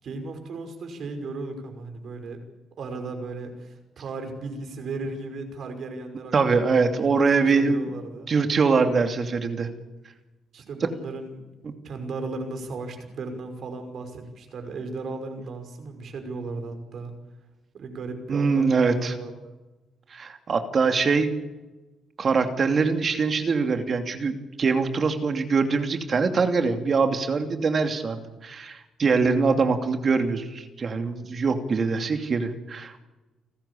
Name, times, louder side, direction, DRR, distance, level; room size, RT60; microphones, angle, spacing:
voice 1, 0.0-2.4 2.8-6.3 6.7-7.1 7.4-8.3 10.5-11.4 11.8-17.1 17.7-19.5, right 3 dB, 60° right, 6 dB, 5.7 m, -36 dB
voice 2, 6.3-7.8 8.3-9.7 11.6-11.7 18.3-19.1 20.1-21.3 22.2-33.0, right 4 dB, 45° right, 6 dB, 2.8 m, -23 dB
30.0 x 13.5 x 8.6 m, 1.1 s
cardioid pair, 90°, 0 cm